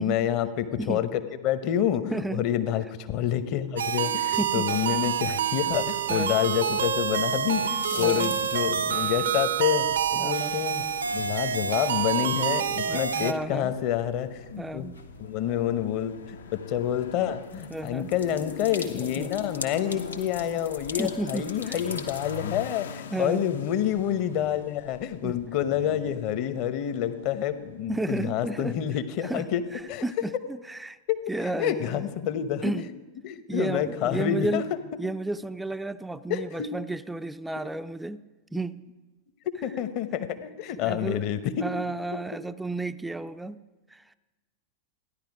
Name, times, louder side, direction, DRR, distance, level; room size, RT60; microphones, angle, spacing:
voice 1, 0.0-10.8 11.1-14.9 15.2-29.6 29.9-30.0 31.1-31.2 31.6-32.9 33.2-34.6 36.3-36.7 39.6-41.7, left 10 dB, 45° left, 11 dB, 0.9 m, -28 dB
voice 2, 2.1-2.4 4.3-4.7 6.1-6.3 7.9-8.4 10.2-10.6 12.9-13.7 14.6-15.0 17.7-18.1 19.0-19.3 21.0-21.8 23.1-23.4 25.2-25.4 27.9-28.8 29.2-29.5 29.7-31.0 31.3-32.1 32.6-32.9 33.5-34.7 35.0-38.2 38.5-38.8 40.7-41.3 41.6-43.6 43.9-44.1, right 2 dB, 5° right, 11 dB, 0.4 m, -32 dB
sound 1, 3.8-13.3, right 8 dB, 65° right, 0.6 m, -27 dB
sound 2, 4.7-22.4, left 3 dB, 80° left, 1.2 m, -44 dB
sound 3, 14.1-30.0, left 6 dB, 65° left, 0.6 m, -43 dB
15.0 x 10.5 x 5.0 m, 1.2 s
figure-of-eight pair, 90°, 0 cm